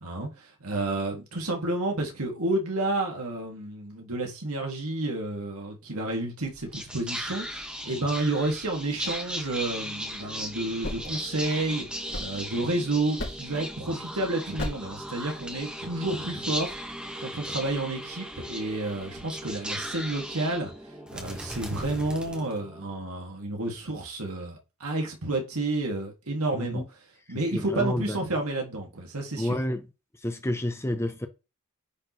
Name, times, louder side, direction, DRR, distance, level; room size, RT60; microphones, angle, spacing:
voice 1, 0.0-11.8 12.2-16.8 17.2-20.7 21.1-26.8 27.3-29.6, right 2 dB, 85° right, 2.1 m, -30 dB
Whispering, 6.4-23.0, equal, 5° right, 1.1 m, -37 dB
sound 1, 10.6-12.8 13.2-13.7 14.6-15.0, left 1 dB, 75° left, 3.3 m, -37 dB
voice 2, 26.5-26.8 27.5-28.2 29.4-29.9 30.2-31.3, left 1 dB, 10° left, 0.6 m, -29 dB
9.6 x 4.2 x 3.1 m
head